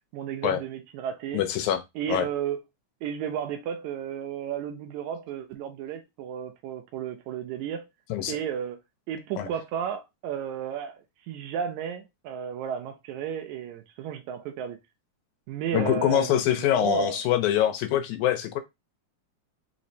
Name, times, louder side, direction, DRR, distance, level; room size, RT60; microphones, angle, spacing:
voice 1, 0.1-1.5 2.0-2.6 3.0-7.9 8.3-8.8 9.1-14.8 15.5-17.2, right 8 dB, 85° right, 2.0 m, -33 dB
voice 2, 1.3-1.8 2.1-2.3 8.1-8.4 9.4-9.5 15.7-18.6, left 11 dB, 85° left, 2.1 m, -24 dB
5.0 x 3.1 x 2.7 m
omnidirectional pair, 3.3 m